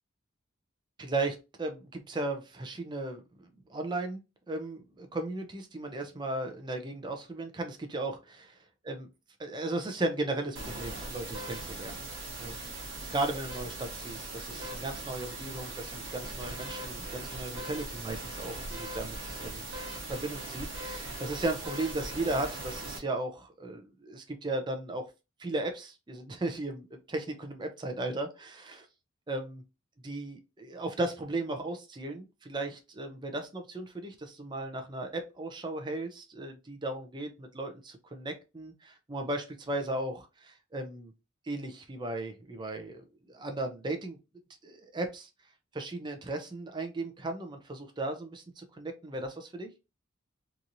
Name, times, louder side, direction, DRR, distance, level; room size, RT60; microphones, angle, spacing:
voice 1, 1.0-4.2 4.5-8.6 8.8-9.1 9.4-12.0 12.4-19.6 20.1-25.0 25.4-28.9 29.3-29.6 30.0-41.1 41.5-44.2 44.6-45.3 45.7-49.7, right 2 dB, 20° right, 5 dB, 0.5 m, -36 dB
sound 1, 10.6-23.0, right 2 dB, 65° right, 1.0 m, -40 dB
2.9 x 2.5 x 2.6 m, 0.27 s
head